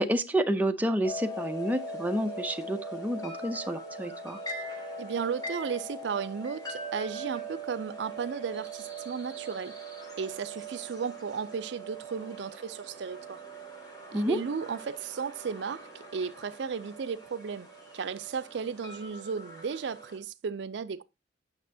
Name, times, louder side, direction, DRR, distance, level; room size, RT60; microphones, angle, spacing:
voice 1, 0.0-4.4 14.1-14.4, right 1 dB, 10° right, 0.5 m, -29 dB
sound 1, 1.0-20.2, right 1 dB, 20° left, 1.9 m, -41 dB
voice 2, 5.0-9.8 10.2-13.4 14.1-17.7 17.9-21.0, right 6 dB, 65° right, 0.4 m, -35 dB
8.8 x 6.1 x 2.7 m
head